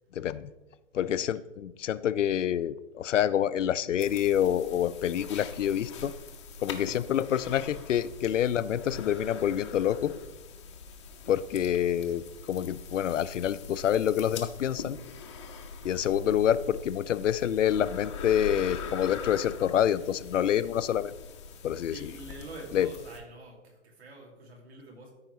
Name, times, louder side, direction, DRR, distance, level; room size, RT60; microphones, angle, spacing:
voice 1, 0.1-0.5 0.9-6.1 6.6-10.1 11.3-15.0 15.8-21.1 21.6-22.2 22.7-22.9, left 10 dB, 75° left, 15 dB, 0.5 m, -27 dB
voice 2, 0.9-1.3 6.7-7.0 21.9-25.1, right 2 dB, 55° right, 1 dB, 2.4 m, -46 dB
sound 1, 4.0-23.2, left 4 dB, 25° left, 0.6 m, -42 dB
13.5 x 4.7 x 3.1 m, 1.1 s
hypercardioid pair, 150°, 38 cm